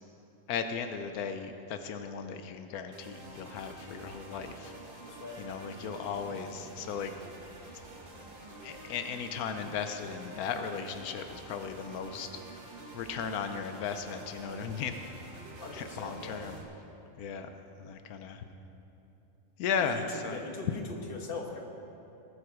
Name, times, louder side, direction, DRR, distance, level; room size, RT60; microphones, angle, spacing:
voice 1, 0.5-4.7 5.4-7.1 8.6-12.3 12.9-15.0 15.7-16.6 17.2-17.5 17.8-18.4 19.6-20.4, left 6 dB, 90° left, 8 dB, 1.2 m, -36 dB
sound 1, 2.9-16.6, right 2 dB, 40° right, 1.4 m, -48 dB
voice 2, 15.6-16.4 19.8-21.6, left 3 dB, 40° left, 1 dB, 1.4 m, -41 dB
19.5 x 7.0 x 4.8 m, 2.9 s
omnidirectional pair, 1.5 m